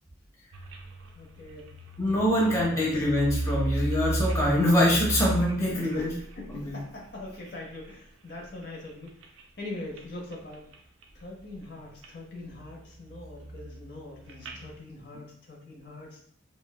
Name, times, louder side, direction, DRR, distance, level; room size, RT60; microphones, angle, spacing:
sound 1, 0.5-7.9 8.4-9.4 9.8-10.1 10.3-11.2 11.5-12.1 12.4-14.8, right 2 dB, 75° right, 0.4 m, -35 dB
voice 1, 1.1-1.7 2.1-2.9 5.9-9.1 9.6-10.7 11.1-16.3, left 2 dB, 55° left, -2 dB, 0.6 m, -42 dB
voice 2, 2.0-6.1 6.5-6.8, left 1 dB, 15° left, -5 dB, 0.6 m, -24 dB
3.0 x 2.1 x 2.2 m, 0.63 s
head